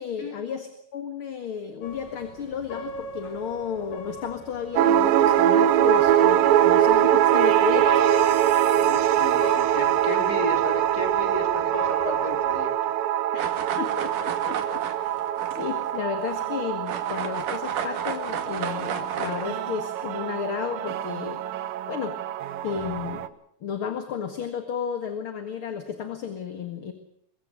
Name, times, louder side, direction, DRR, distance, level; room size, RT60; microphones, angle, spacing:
voice 1, 0.0-8.3 13.3-13.4 13.8-15.2 15.5-21.4 21.9-22.4 22.6-23.3 23.6-26.9, left 7 dB, 45° left, 8 dB, 2.2 m, -33 dB
sound 1, 1.8-12.6, left 1 dB, 75° left, 4.6 m, -38 dB
sound 2, 4.8-23.3, right 11 dB, 85° right, 2.8 m, -23 dB
voice 2, 8.8-12.9, left 3 dB, 25° left, 6 dB, 3.6 m, -34 dB
sound 3, 13.4-16.5 16.9-19.5, right 7 dB, 65° right, 3.5 m, -34 dB
23.5 x 23.0 x 6.4 m, 0.71 s
omnidirectional pair, 4.0 m